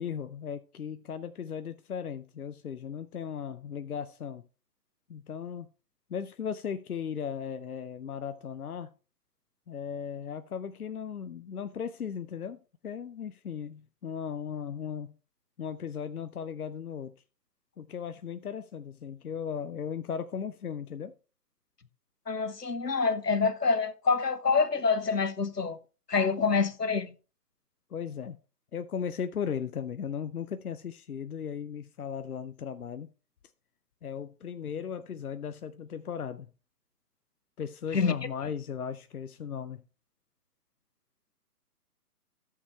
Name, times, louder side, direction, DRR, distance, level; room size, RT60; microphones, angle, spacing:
voice 1, 0.0-4.4 5.1-5.7 6.1-8.9 9.7-15.2 15.6-17.1 17.8-21.1 27.9-28.4 28.7-33.1 34.0-36.5 37.6-39.8, left 7 dB, 65° left, 0.7 m, -37 dB
voice 2, 22.3-25.8 26.1-27.1 37.9-38.1, left 5 dB, 90° left, 1.1 m, -26 dB
14.0 x 6.7 x 3.2 m
figure-of-eight pair, 135°, 47 cm